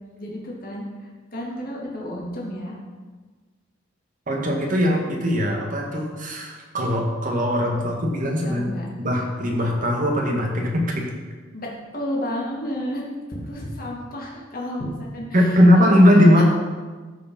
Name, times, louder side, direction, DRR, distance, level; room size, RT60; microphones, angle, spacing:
voice 1, 0.2-0.8 1.3-2.8 8.4-8.9 11.5-13.0 13.3-15.6 15.9-16.0 16.4-16.5, equal, 50° left, -3 dB, 2.3 m, -31 dB
voice 2, 4.3-8.6 9.0-11.0 15.3-16.4, equal, 45° right, 0 dB, 1.9 m, -19 dB
13.5 x 4.9 x 5.4 m, 1.4 s
head